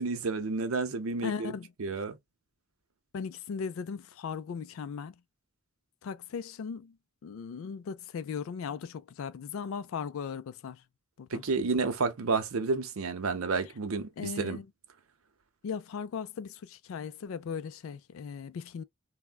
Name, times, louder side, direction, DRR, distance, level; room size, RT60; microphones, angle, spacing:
voice 1, 0.0-1.5 1.8-2.2 11.3-14.6, right 4 dB, 80° right, 0.7 m, -30 dB
voice 2, 1.2-2.0 3.1-5.2 6.0-7.0 7.2-10.8 11.2-11.4 14.2-14.7 15.6-18.8, left 6 dB, 70° left, 0.3 m, -38 dB
3.5 x 2.1 x 2.2 m
head